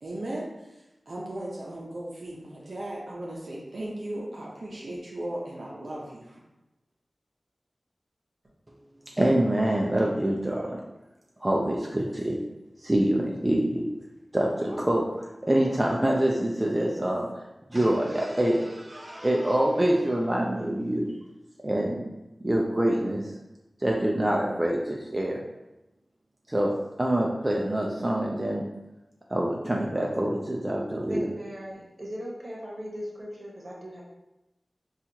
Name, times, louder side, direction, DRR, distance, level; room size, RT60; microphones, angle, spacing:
voice 1, 0.0-6.4, right 1 dB, 70° right, -4 dB, 0.6 m, -37 dB
voice 2, 9.1-10.8 11.4-12.4 12.8-13.9 14.3-21.2 21.6-22.1 22.4-23.4 23.8-25.4 26.5-28.7 29.3-31.3, right 1 dB, 25° right, -2 dB, 0.4 m, -26 dB
voice 3, 31.0-34.0, equal, 50° right, -4 dB, 1.0 m, -38 dB
4.1 x 2.4 x 2.8 m, 0.96 s
wide cardioid pair, 55°, 0 cm